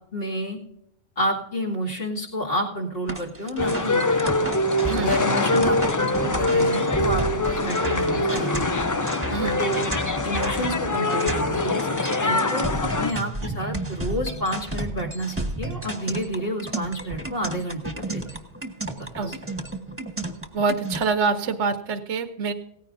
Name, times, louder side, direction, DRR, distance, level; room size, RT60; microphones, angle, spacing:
voice 1, 0.1-0.6 1.2-4.3 4.9-8.7 9.6-9.9 10.2-18.2 19.0-19.4, equal, 50° left, -3 dB, 2.7 m, -29 dB
sound 1, 3.1-21.0, right 1 dB, 10° right, 1.3 m, -32 dB
sound 2, 3.6-13.1, left 2 dB, 30° left, 0.3 m, -24 dB
voice 2, 9.3-9.6 19.2-19.3 20.5-22.5, right 4 dB, 75° right, 8 dB, 1.1 m, -25 dB
17.5 x 14.5 x 2.6 m, 0.79 s
omnidirectional pair, 1.2 m